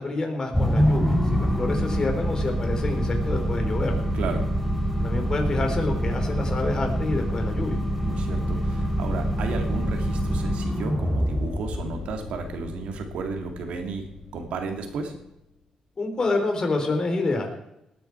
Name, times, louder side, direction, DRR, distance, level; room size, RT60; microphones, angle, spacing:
voice 1, 0.0-3.9 5.0-7.8 16.0-17.6, left 3 dB, 35° left, 4 dB, 3.8 m, -28 dB
sound 1, 0.5-15.0, equal, 5° left, 3.3 m, -26 dB
voice 2, 8.0-14.0 14.3-15.1, right 4 dB, 80° right, 4 dB, 2.7 m, -33 dB
19.0 x 9.4 x 4.7 m, 0.86 s
cardioid pair, 95°, 2 cm